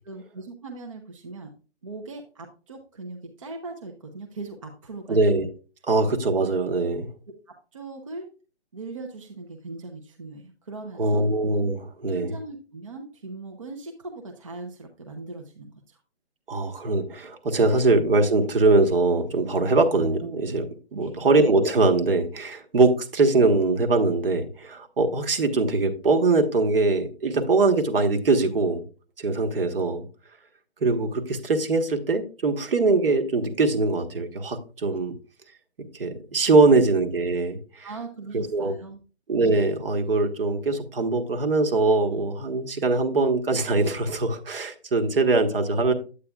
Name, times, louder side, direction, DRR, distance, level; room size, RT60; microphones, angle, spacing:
voice 1, 0.0-1.5 1.8-5.2 7.5-8.3 8.7-11.3 12.1-16.0 20.9-21.2 37.8-39.0, right 3 dB, 30° right, 3 dB, 0.7 m, -39 dB
voice 2, 5.1-5.5 5.9-7.1 11.0-12.4 16.5-28.8 29.2-30.0 30.8-35.1 36.0-37.9 38.3-38.7 39.3-45.9, right 3 dB, 55° right, 6 dB, 1.4 m, -22 dB
8.7 x 8.7 x 2.3 m, 0.35 s
hypercardioid pair, 170°, 34 cm